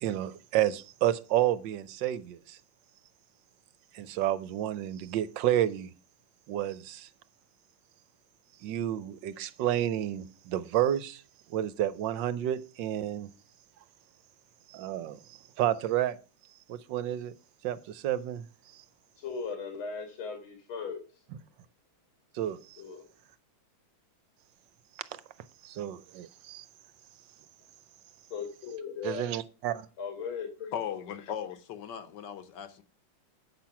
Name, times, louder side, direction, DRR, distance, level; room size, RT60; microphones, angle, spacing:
voice 1, 0.0-2.6 3.9-5.9 6.5-7.1 8.6-11.2 11.5-13.3 14.7-16.2 16.7-17.3 17.6-18.5 18.7-18.8 22.3-22.8 25.6-26.6 29.0-29.9, right 12 dB, 70° right, 1.3 m, -30 dB
voice 2, 19.2-21.0 22.8-23.0 28.3-29.3 30.0-30.7, left 6 dB, 90° left, 2.6 m, -37 dB
voice 3, 30.7-32.8, left 9 dB, 65° left, 1.5 m, -37 dB
8.7 x 6.0 x 5.8 m
omnidirectional pair, 2.2 m